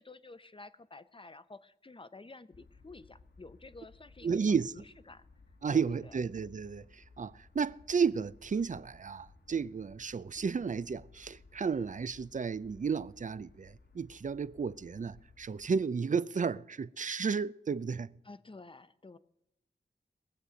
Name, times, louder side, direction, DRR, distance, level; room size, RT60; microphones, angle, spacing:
voice 1, 0.0-5.3 5.7-6.2 18.2-19.2, left 3 dB, 30° left, 0.7 m, -51 dB
sound 1, 2.5-15.8, left 3 dB, 75° left, 1.6 m, -59 dB
voice 2, 4.2-4.7 5.6-18.1, right 5 dB, 45° right, 0.5 m, -33 dB
21.5 x 8.2 x 5.1 m
wide cardioid pair, 85°, 18 cm